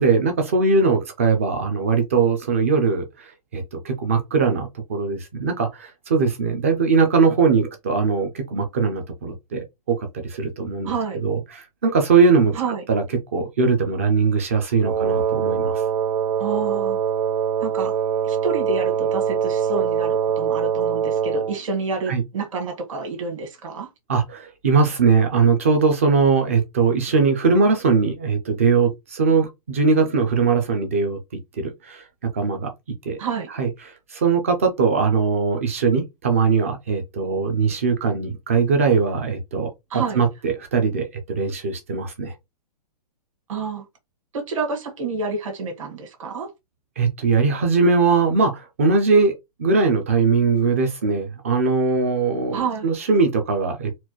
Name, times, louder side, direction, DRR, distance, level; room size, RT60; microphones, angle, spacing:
voice 1, 0.0-10.9 11.2-12.6 12.9-13.0 13.3-15.8 22.1-22.2 24.1-31.2 31.6-32.1 32.3-32.7 33.0-33.2 33.5-39.7 40.1-42.3 47.0-49.3 49.6-54.0, right 4 dB, 20° right, 0.4 m, -20 dB
voice 2, 10.8-11.2 12.5-12.8 16.4-17.0 17.6-17.9 18.2-23.9 33.2-33.5 39.9-40.2 43.5-43.8 44.3-46.5 52.5-52.9, right 4 dB, 50° right, 1.7 m, -28 dB
Wind instrument woodwind instrument, 14.8-21.6, right 8 dB, 75° right, 0.5 m, -23 dB
4.2 x 2.2 x 3.0 m
hypercardioid pair, 180°, 20 cm